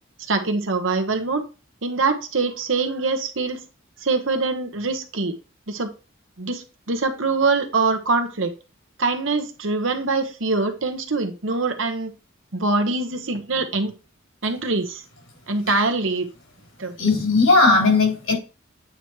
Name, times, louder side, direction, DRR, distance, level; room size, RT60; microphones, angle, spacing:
voice 1, 0.3-1.4 1.8-3.6 4.0-5.3 5.7-5.9 6.4-8.5 9.0-12.1 12.5-13.9 14.4-15.0 15.5-16.3 16.8-17.0, right 3 dB, 70° right, 1.1 m, -24 dB
voice 2, 17.0-18.3, left 3 dB, 85° left, 3.7 m, -17 dB
8.9 x 3.1 x 4.7 m
head